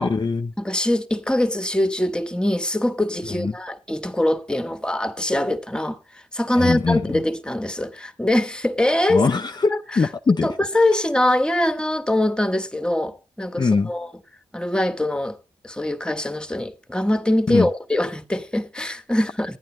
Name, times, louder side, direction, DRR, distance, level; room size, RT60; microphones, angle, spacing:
voice 1, 0.0-0.5 3.3-3.5 6.5-7.2 9.1-10.6 13.6-13.9 17.5-17.7, left 4 dB, 35° left, 0.7 m, -22 dB
voice 2, 0.6-9.3 9.7-9.8 10.4-14.1 14.5-15.4 15.6-19.6, left 1 dB, 5° left, 1.7 m, -23 dB
12.0 x 9.0 x 4.3 m
supercardioid pair, 50°, 13 cm